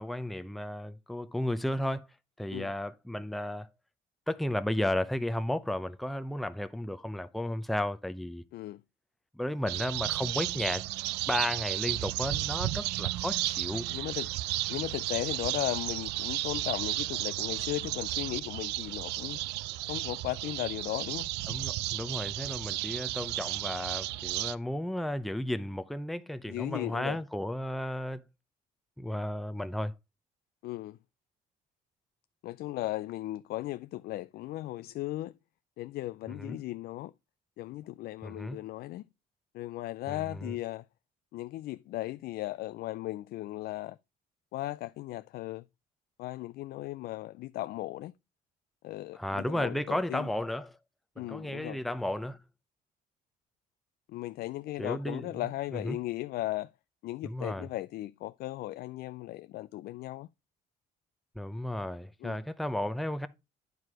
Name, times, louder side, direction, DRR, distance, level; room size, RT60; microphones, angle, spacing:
voice 1, 0.0-2.1 2.4-3.7 4.3-8.4 9.3-10.9 11.3-13.9 21.5-28.2 29.0-29.9 36.3-36.6 38.2-38.6 40.1-40.5 49.1-50.7 51.2-52.4 54.8-55.5 55.7-56.0 57.2-57.7 61.4-63.3, left 1 dB, ahead, 0.6 m, -33 dB
sound 1, 9.7-24.6, right 17 dB, 90° right, 0.5 m, -33 dB
voice 2, 13.9-14.3 14.7-19.4 19.9-21.3 26.5-27.2 30.6-31.0 32.4-35.3 35.8-37.1 37.6-39.0 39.5-40.8 41.3-44.0 44.5-45.6 46.2-48.1 48.8-50.3 51.2-51.8 54.1-56.7 57.0-60.3 62.2-62.4, left 16 dB, 65° left, 0.4 m, -36 dB
9.5 x 4.7 x 4.8 m
cardioid pair, 110°, 17 cm